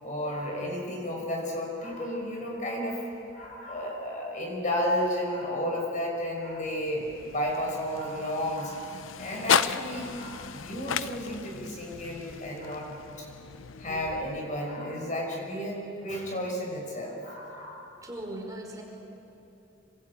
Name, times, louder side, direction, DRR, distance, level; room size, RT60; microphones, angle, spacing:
voice 1, 0.0-3.0 3.3-8.8 9.2-12.9 13.2-13.3 13.8-17.9, equal, 40° left, -1 dB, 6.2 m, -32 dB
sound 1, 6.5-14.8, left 7 dB, 90° left, 0.7 m, -34 dB
voice 2, 17.9-18.8, right 1 dB, 20° right, 0 dB, 4.8 m, -40 dB
26.5 x 23.0 x 9.0 m, 2.8 s
head